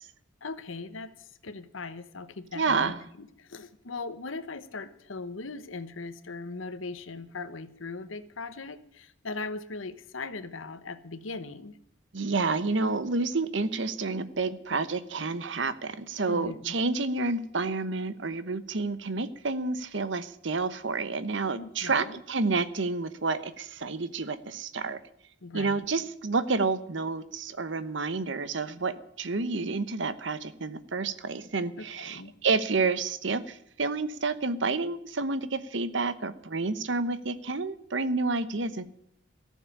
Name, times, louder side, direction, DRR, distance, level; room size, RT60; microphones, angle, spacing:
voice 1, 0.4-11.8 16.3-16.6 21.6-22.2 25.4-25.9 31.8-32.3, left 3 dB, 85° left, 12 dB, 1.0 m, -39 dB
voice 2, 2.5-3.0 12.1-25.0 25.5-38.8, right 3 dB, 70° right, 14 dB, 1.0 m, -29 dB
14.0 x 7.4 x 9.9 m, 0.73 s
head